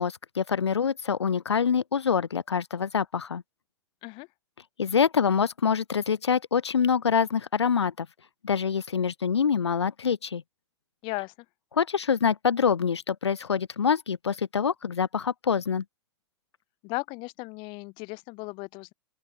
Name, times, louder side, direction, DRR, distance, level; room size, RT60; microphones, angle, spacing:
voice 1, 0.0-3.4 4.8-8.1 8.4-10.4 11.7-15.8, left 6 dB, 80° left, 0.4 m, -25 dB
voice 2, 11.0-11.3 16.8-18.9, left 28 dB, 35° left, 0.6 m, -36 dB
open air
figure-of-eight pair, 100°, 14 cm